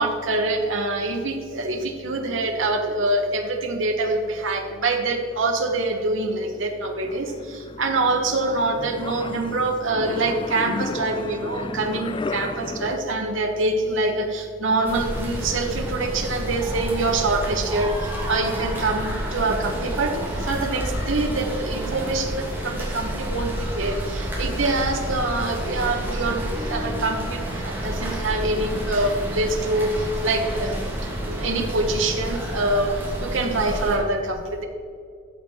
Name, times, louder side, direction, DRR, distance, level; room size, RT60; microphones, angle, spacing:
voice 1, 0.0-30.8 31.2-34.6, right 2 dB, 70° right, 2 dB, 1.3 m, -25 dB
sound 1, 6.5-13.0, left 3 dB, 25° left, 0.4 m, -33 dB
sound 2, 14.8-34.0, right 1 dB, 10° right, 2.2 m, -29 dB
14.0 x 7.3 x 4.4 m, 2.3 s
head